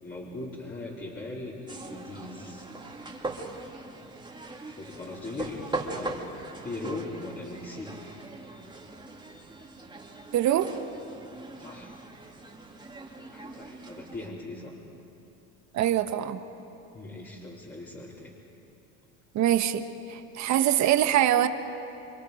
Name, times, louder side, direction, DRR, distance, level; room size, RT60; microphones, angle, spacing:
voice 1, 0.0-2.7 4.6-6.2 6.6-8.0 11.6-11.9 13.3-14.7 16.9-18.3, left 2 dB, 30° left, -6 dB, 4.2 m, -39 dB
sound 1, 1.7-14.3, right 2 dB, 15° right, 2.5 m, -40 dB
voice 2, 10.3-10.7 15.7-16.4 19.3-21.5, right 11 dB, 55° right, 9 dB, 1.4 m, -24 dB
28.0 x 24.0 x 5.2 m, 2.8 s
supercardioid pair, 85°, 33 cm